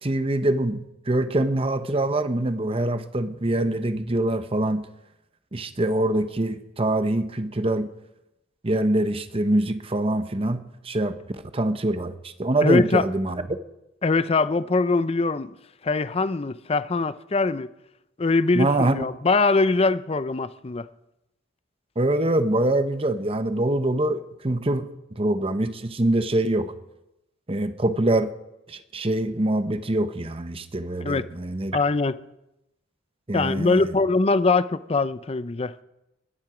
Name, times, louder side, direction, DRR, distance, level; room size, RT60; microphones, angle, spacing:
voice 1, 0.0-4.9 5.5-7.9 8.6-13.5 18.5-19.0 22.0-26.7 27.5-28.3 28.7-31.8 33.3-33.9, right 1 dB, 30° right, 0.8 m, -24 dB
voice 2, 12.6-13.0 14.0-15.5 15.8-17.7 18.2-20.9 31.1-31.2 31.7-32.2 33.3-35.7, left 3 dB, 30° left, 0.5 m, -22 dB
21.0 x 10.5 x 5.0 m
head